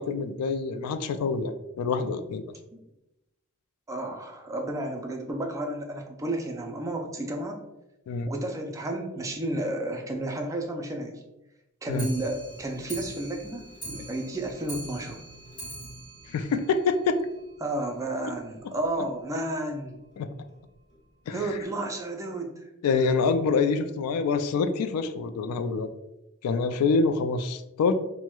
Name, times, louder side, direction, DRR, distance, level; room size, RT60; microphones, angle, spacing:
voice 1, 0.0-2.4 8.1-8.3 11.9-12.1 16.3-17.2 20.2-20.3 21.3-21.6 22.8-25.9 26.4-27.9, left 4 dB, 85° left, 13 dB, 0.3 m, -26 dB
voice 2, 3.9-7.6 8.3-11.2 11.8-15.2 17.6-20.0 21.3-22.5, right 1 dB, 15° right, 2 dB, 0.3 m, -32 dB
Clock, 11.9-17.4 17.7-17.8 18.1-18.2 18.5-18.6 18.9-19.0 19.7-19.8 20.5-20.6 21.3-21.4, right 1 dB, 35° left, 1.2 m, -42 dB
4.4 x 2.1 x 2.2 m, 0.93 s
head